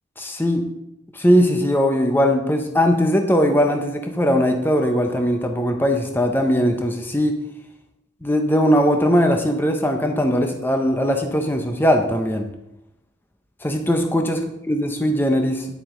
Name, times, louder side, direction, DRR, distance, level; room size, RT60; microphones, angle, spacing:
voice 1, 0.2-0.6 1.1-7.3 8.2-12.5 13.6-14.4 14.7-15.7, equal, 10° left, 4 dB, 0.8 m, -19 dB
Mallet percussion, 4.8-6.6, left 2 dB, 45° left, 1.9 m, -50 dB
10.5 x 7.5 x 3.8 m, 0.86 s
head